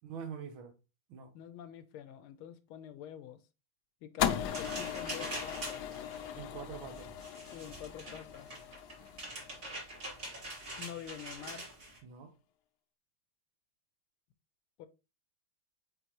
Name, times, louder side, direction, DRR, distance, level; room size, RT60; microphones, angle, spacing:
voice 1, 0.0-0.8 1.1-1.3 6.4-7.1 12.0-12.3, right 7 dB, 70° right, 1.8 m, -44 dB
voice 2, 1.3-3.4 4.0-5.9 7.5-8.5 10.5-11.7 14.8-14.9, left 9 dB, 90° left, 1.6 m, -47 dB
sound 1, 4.2-10.5, left 9 dB, 70° left, 0.9 m, -38 dB
sound 2, 4.5-12.0, right 1 dB, 40° right, 3.6 m, -44 dB
8.1 x 3.9 x 3.0 m
omnidirectional pair, 2.3 m